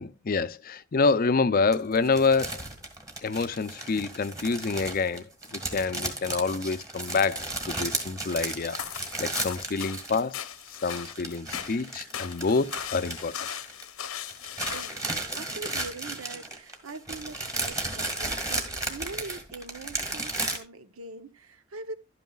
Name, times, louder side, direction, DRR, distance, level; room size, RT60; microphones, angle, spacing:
voice 1, 0.0-2.6 3.2-5.2 5.5-8.8 9.2-10.5 10.8-13.5, left 4 dB, 45° left, 0.5 m, -27 dB
sound 1, 1.7-10.4 10.7-14.0 14.3-20.6, right 2 dB, 15° right, 1.7 m, -34 dB
sound 2, 8.5-15.2, left 9 dB, 85° left, 0.9 m, -38 dB
voice 2, 14.7-15.0 15.3-21.9, right 3 dB, 85° right, 0.9 m, -42 dB
12.0 x 9.2 x 2.3 m
head